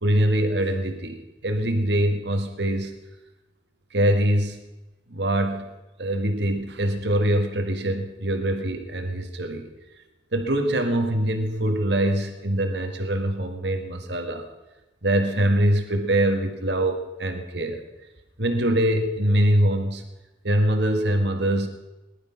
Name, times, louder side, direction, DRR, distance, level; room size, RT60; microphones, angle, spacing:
voice 1, 0.0-3.0 3.9-4.6 5.1-5.7 6.0-9.7 10.3-14.5 15.0-17.8 18.4-20.0 20.4-21.7, right 1 dB, 60° right, 5 dB, 1.9 m, -23 dB
19.5 x 12.0 x 5.9 m, 1.1 s
head